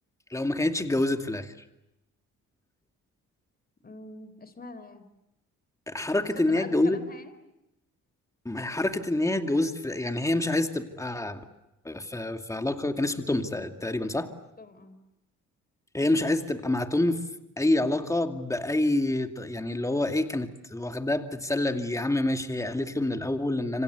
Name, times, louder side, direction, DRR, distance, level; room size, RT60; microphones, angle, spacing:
voice 1, 0.3-1.5 5.9-7.0 8.4-11.4 11.8-14.3 15.9-17.2 17.6-23.8, left 2 dB, 10° left, 7 dB, 2.4 m, -27 dB
voice 2, 3.8-5.1 6.2-7.3 14.6-15.0, left 2 dB, 30° left, 12 dB, 4.1 m, -43 dB
27.5 x 25.5 x 8.3 m, 0.89 s
cardioid pair, 90°, 30 cm